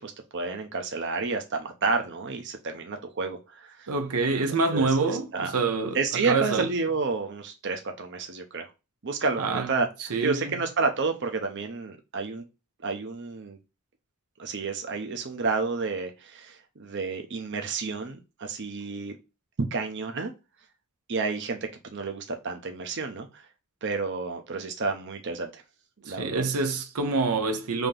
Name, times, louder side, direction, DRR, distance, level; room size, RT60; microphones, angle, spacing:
voice 1, 0.0-3.9 4.7-4.9 5.3-5.5 5.9-8.7 9.0-12.4 12.8-13.6 14.4-19.2 19.7-20.3 21.1-23.5 23.8-25.6 26.0-26.4, right 4 dB, 55° right, 0.7 m, -30 dB
voice 2, 3.9-6.0 6.3-6.7 9.4-9.7 10.1-10.5 26.1-27.9, right 3 dB, 85° right, 0.7 m, -26 dB
3.5 x 2.9 x 3.6 m
head